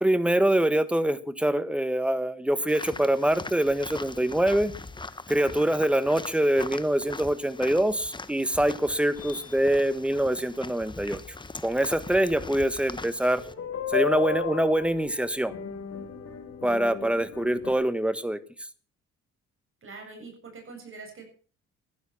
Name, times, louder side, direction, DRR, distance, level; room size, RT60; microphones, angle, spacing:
voice 1, 0.0-4.7 5.3-11.2 11.6-13.4 13.9-15.5 16.6-18.4, right 1 dB, 5° right, 13 dB, 1.4 m, -24 dB
sound 1, 2.7-13.5, left 3 dB, 15° left, 1.2 m, -41 dB
sound 2, 9.2-9.8 11.9-12.0 13.4-17.7, left 7 dB, 55° left, 3.9 m, -34 dB
voice 2, 19.8-21.2, right 4 dB, 45° right, 2 dB, 7.3 m, -43 dB
15.0 x 11.5 x 5.9 m, 0.41 s
cardioid pair, 90°, 30 cm